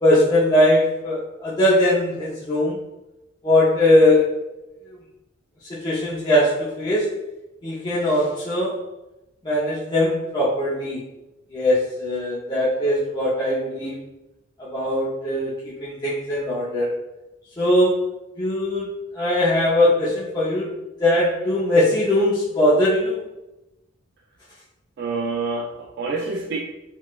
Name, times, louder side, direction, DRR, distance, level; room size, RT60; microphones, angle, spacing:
voice 1, 0.0-2.8 3.4-4.3 4.9-5.0 5.7-7.1 7.6-8.8 9.4-11.0 11.5-14.0 14.6-16.9 17.6-18.1 18.4-20.7 21.0-23.2, left 1 dB, 20° left, -9 dB, 0.5 m, -20 dB
voice 2, 25.0-26.6, right 3 dB, 55° right, 0 dB, 0.3 m, -27 dB
4.4 x 2.1 x 2.3 m, 0.98 s
head